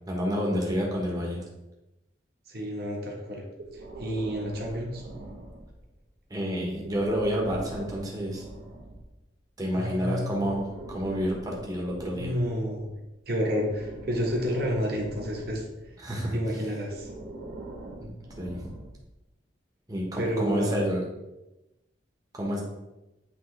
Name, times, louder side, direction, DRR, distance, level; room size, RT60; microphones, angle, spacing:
voice 1, 0.1-1.4 6.3-8.4 9.6-12.3 16.0-16.3 18.0-18.1 18.4-18.7 19.9-21.0 22.3-22.6, equal, 20° right, -2 dB, 1.2 m, -29 dB
voice 2, 2.5-3.4 3.7-5.0 9.7-10.4 12.1-12.9 13.3-15.9 16.3-17.1 20.1-20.8, equal, 55° right, -1 dB, 1.3 m, -30 dB
Breathing, 3.6-6.0 6.8-9.1 10.2-13.1 13.7-15.9 16.8-19.1, right 2 dB, 70° right, 1.2 m, -43 dB
8.3 x 3.4 x 3.3 m, 0.97 s
head